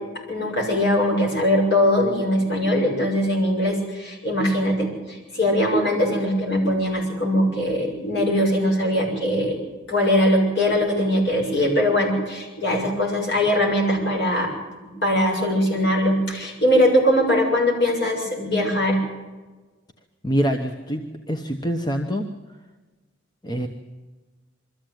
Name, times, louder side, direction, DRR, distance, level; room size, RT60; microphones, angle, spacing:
voice 1, 0.3-9.6 9.9-14.5 14.8-19.0, left 1 dB, 55° left, -1 dB, 7.1 m, -21 dB
voice 2, 20.2-22.2 23.4-23.7, equal, 20° left, 4 dB, 1.1 m, -25 dB
22.5 x 14.5 x 9.2 m, 1.3 s
head